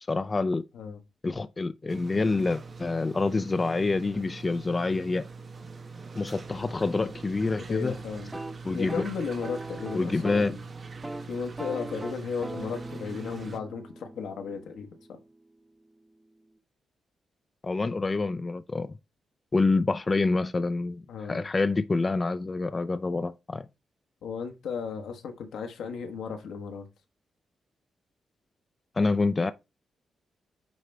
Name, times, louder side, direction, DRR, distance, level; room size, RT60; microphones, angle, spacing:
voice 1, 0.1-0.6 1.2-5.3 6.2-8.0 8.6-9.0 9.9-10.6 17.6-19.0 19.5-23.7 29.0-29.5, left 3 dB, 30° left, 0.4 m, -27 dB
sound 1, 1.9-13.6, right 4 dB, 45° right, 1.1 m, -43 dB
voice 2, 7.7-8.3 8.7-10.6 11.3-15.2 21.1-21.5 24.2-26.9, left 6 dB, 85° left, 1.2 m, -35 dB
sound 2, 8.2-10.6 10.9-11.3 11.6-15.4, right 1 dB, 15° right, 0.8 m, -41 dB
9.2 x 3.2 x 3.4 m
cardioid pair, 80°, 0 cm